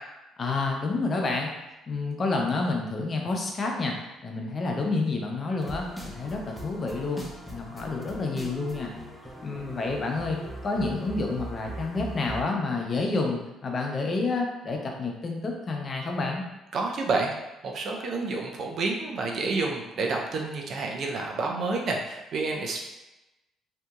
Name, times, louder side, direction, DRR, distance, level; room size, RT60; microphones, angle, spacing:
voice 1, 0.4-1.5 1.9-3.9 4.2-8.9 9.4-10.4 10.6-16.4, left 3 dB, 40° left, 1 dB, 0.6 m, -29 dB
sound 1, 5.6-12.4, right 1 dB, ahead, 0.6 m, -40 dB
voice 2, 16.7-17.3 17.6-22.8, right 3 dB, 55° right, 1 dB, 0.5 m, -29 dB
2.7 x 2.7 x 2.3 m, 0.97 s
supercardioid pair, 80°, 0 cm